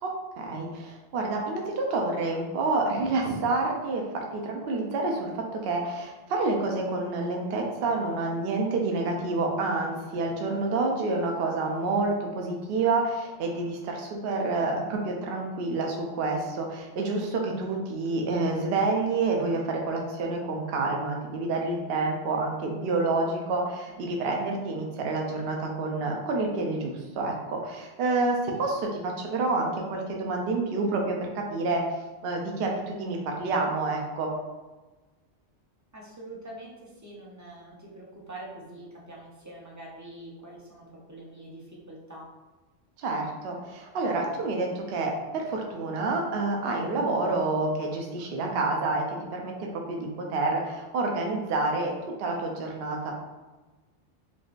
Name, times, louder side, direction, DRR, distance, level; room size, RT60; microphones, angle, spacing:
voice 1, 0.0-31.8 32.2-34.3 43.0-49.0 49.3-51.9 52.2-53.1, right 3 dB, 65° right, 0 dB, 0.7 m, -28 dB
voice 2, 35.9-42.3, right 1 dB, 30° right, -4 dB, 0.3 m, -44 dB
3.6 x 2.4 x 2.4 m, 1.2 s
omnidirectional pair, 1.2 m